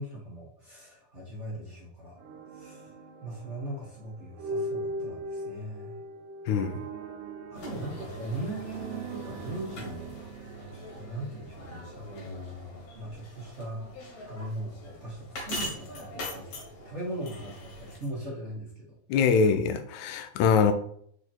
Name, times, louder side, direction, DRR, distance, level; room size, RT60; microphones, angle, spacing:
voice 1, 0.0-2.2 2.5-2.9 3.2-6.0 7.5-10.2 10.9-13.8 14.2-19.0 19.4-19.5, right 1 dB, 45° right, -5 dB, 0.9 m, -39 dB
sound 1, 2.2-12.3, right 1 dB, 85° right, 2.2 m, -40 dB
voice 2, 6.5-6.8 19.1-20.7, left 6 dB, 80° left, 8 dB, 1.8 m, -23 dB
sound 2, 7.5-18.1, left 1 dB, 65° left, 2.7 m, -42 dB
4.9 x 4.5 x 4.3 m, 0.65 s
omnidirectional pair, 3.6 m